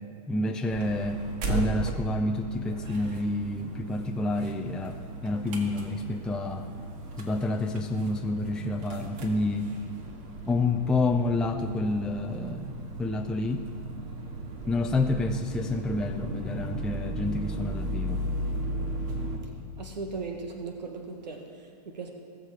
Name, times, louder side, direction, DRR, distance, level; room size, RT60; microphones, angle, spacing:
voice 1, 0.3-1.2 1.5-6.6 7.2-9.6 10.5-12.7 13.0-13.6 14.7-18.2, left 2 dB, 5° left, 2 dB, 0.4 m, -29 dB
sound 1, 0.7-19.4, right 1 dB, 35° right, 1.8 m, -36 dB
voice 2, 19.8-22.1, right 4 dB, 85° right, 3 dB, 1.5 m, -38 dB
19.0 x 6.6 x 4.9 m, 2.6 s
hypercardioid pair, 125°, 21 cm